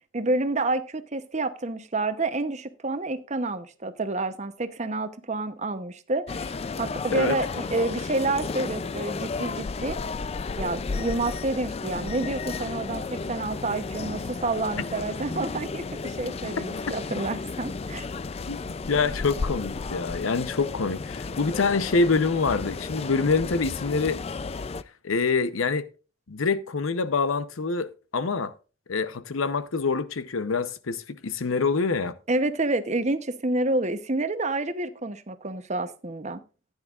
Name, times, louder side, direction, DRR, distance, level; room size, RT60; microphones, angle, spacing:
voice 1, 0.1-10.0 10.6-18.1 32.3-36.4, right 2 dB, 35° right, 0.8 m, -29 dB
sound 1, 6.3-24.8, left 4 dB, 30° left, 0.4 m, -33 dB
voice 2, 18.5-24.2 25.0-25.9 26.3-28.5 28.9-32.1, left 4 dB, 90° left, 0.8 m, -26 dB
14.5 x 9.8 x 2.4 m
head